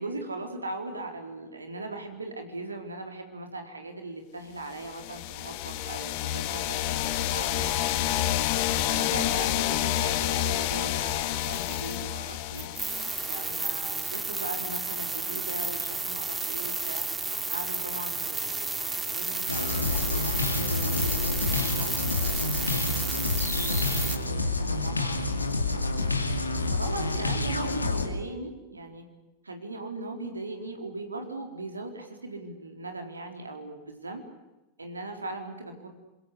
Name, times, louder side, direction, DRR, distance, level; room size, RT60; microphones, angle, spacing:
voice 1, 0.0-8.2 8.7-9.6 9.9-12.7 13.2-17.1 17.5-25.3 25.7-26.3 26.7-29.1 29.4-34.2 34.8-35.9, right 2 dB, 85° right, 4 dB, 4.1 m, -39 dB
sound 1, 4.8-13.6, left 13 dB, 55° left, 1.9 m, -29 dB
sound 2, 11.4-12.0 12.5-24.2, right 3 dB, 15° right, 2.7 m, -32 dB
sound 3, 19.5-28.1, left 3 dB, 90° left, 2.3 m, -28 dB
26.0 x 22.5 x 8.3 m, 1.0 s
figure-of-eight pair, 90°, 0 cm